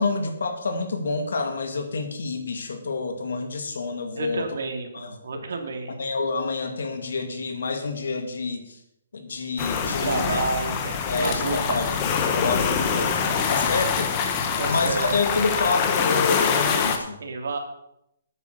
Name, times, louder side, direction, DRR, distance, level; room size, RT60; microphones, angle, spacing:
voice 1, 0.0-4.4 4.9-5.1 5.9-8.8 9.1-10.4 11.1-11.9 12.3-13.1 13.5-14.1 14.6-17.2, left 3 dB, 75° left, 5 dB, 2.2 m, -28 dB
voice 2, 4.1-6.0 10.0-11.8 12.9-13.4 14.6-15.1 17.2-17.6, right 4 dB, 65° right, 4 dB, 2.4 m, -30 dB
sound 1, 9.6-17.0, left 6 dB, 20° left, 1.0 m, -24 dB
8.9 x 7.8 x 6.7 m, 0.78 s
hypercardioid pair, 170°, 0 cm